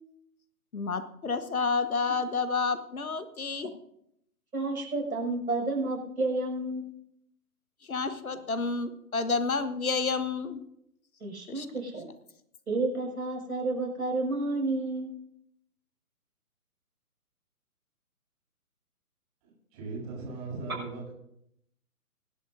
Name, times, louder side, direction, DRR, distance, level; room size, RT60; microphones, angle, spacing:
voice 1, 0.7-3.7 7.9-10.6 11.5-11.7, left 4 dB, 70° left, 11 dB, 1.4 m, -30 dB
voice 2, 4.5-6.9 11.2-12.1 12.7-15.1, right 2 dB, 70° right, 0 dB, 6.3 m, -30 dB
voice 3, 19.4-21.1, right 3 dB, 25° right, -3 dB, 7.1 m, -39 dB
24.5 x 11.5 x 2.7 m, 0.76 s
figure-of-eight pair, 140°, 45 cm